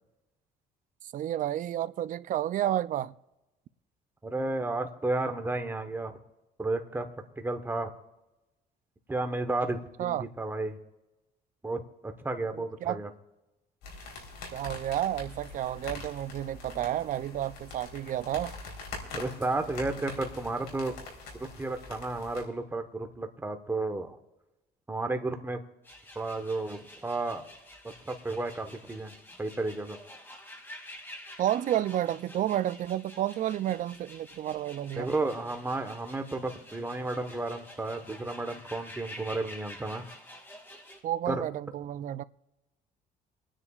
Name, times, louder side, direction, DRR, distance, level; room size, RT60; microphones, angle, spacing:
voice 1, 1.1-3.1 10.0-10.3 12.5-13.0 14.5-18.5 31.4-35.1 41.0-42.2, right 12 dB, 50° right, 0.4 m, -31 dB
voice 2, 4.2-6.2 6.6-7.1 7.4-7.9 9.1-10.8 11.6-13.1 19.1-20.9 21.3-24.2 24.9-25.6 26.1-27.5 28.0-29.1 29.4-30.0 35.0-40.1 41.3-41.4, right 2 dB, 15° right, 1.2 m, -32 dB
sound 1, 13.8-22.4, left 3 dB, 75° left, 3.9 m, -44 dB
sound 2, 25.8-41.0, left 1 dB, 10° left, 2.5 m, -49 dB
27.5 x 9.9 x 2.4 m
cardioid pair, 110°, 17 cm